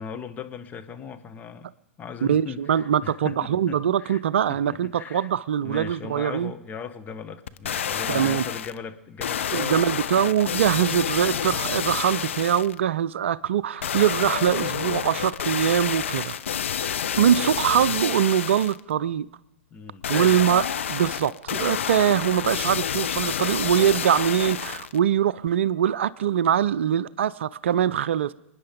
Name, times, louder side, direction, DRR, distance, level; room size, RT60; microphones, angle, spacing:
voice 1, 0.0-1.7 2.0-4.2 4.5-5.3 5.6-9.9 19.7-20.6, left 6 dB, 25° left, 1.2 m, -38 dB
voice 2, 2.2-6.5 8.1-8.4 9.5-16.4 17.2-19.3 20.1-28.3, right 9 dB, 65° right, 0.5 m, -23 dB
sound 1, 7.5-8.8 9.2-12.8 13.8-18.8 20.0-25.0 25.5-25.6, left 9 dB, 70° left, 0.6 m, -29 dB
26.5 x 9.8 x 5.2 m
figure-of-eight pair, 100°, 7 cm